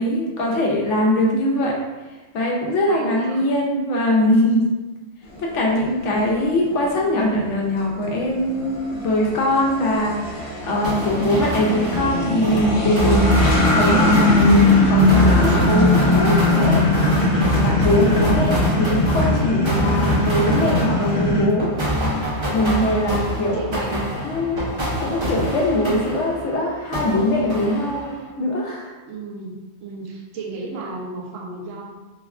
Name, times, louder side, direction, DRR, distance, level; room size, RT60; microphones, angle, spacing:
voice 1, 0.0-1.8 2.3-4.7 5.4-13.3 13.7-16.9 17.6-21.7 22.5-23.6 23.9-24.6 25.0-28.1 28.4-28.9, left 1 dB, 70° left, -1 dB, 0.9 m, -22 dB
voice 2, 2.9-3.4 23.5-24.3 29.1-31.9, right 3 dB, 85° right, -2 dB, 1.0 m, -33 dB
sound 1, 5.3-21.4, left 2 dB, 50° left, 1.2 m, -20 dB
sound 2, 10.8-26.6 26.9-28.3, equal, 45° right, 0.4 m, -25 dB
3.5 x 2.2 x 2.3 m, 1.1 s
omnidirectional pair, 1.3 m